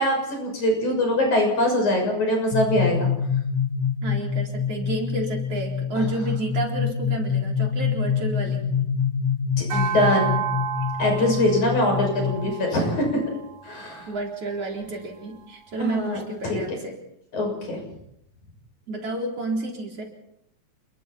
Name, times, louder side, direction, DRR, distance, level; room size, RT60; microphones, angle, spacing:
voice 1, 0.0-3.1 5.9-6.0 9.7-10.4 11.0-13.2 13.7-14.1 15.8-16.6 17.3-17.8, left 1 dB, 85° left, 2 dB, 8.1 m, -23 dB
sound 1, 2.5-12.4, left 7 dB, 60° left, 2.2 m, -26 dB
voice 2, 4.0-8.8 11.2-11.4 12.4-12.6 14.0-17.0 18.9-20.0, right 2 dB, 55° right, 0 dB, 5.0 m, -31 dB
sound 2, 9.7-14.3, right 8 dB, 80° right, 3.0 m, -32 dB
28.5 x 22.5 x 4.4 m, 0.76 s
omnidirectional pair, 3.3 m